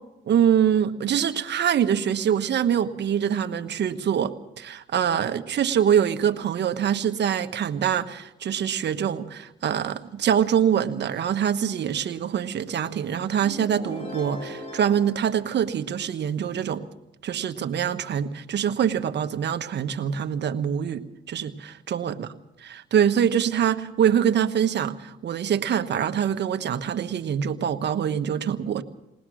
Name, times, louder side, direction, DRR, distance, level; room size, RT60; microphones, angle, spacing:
voice 1, 0.2-16.8 17.2-22.3 22.6-28.8, right 8 dB, 60° right, 8 dB, 1.3 m, -24 dB
sound 1, 13.4-16.2, left 1 dB, 25° left, 6.9 m, -39 dB
21.5 x 19.5 x 6.3 m, 0.91 s
cardioid pair, 90°, 20 cm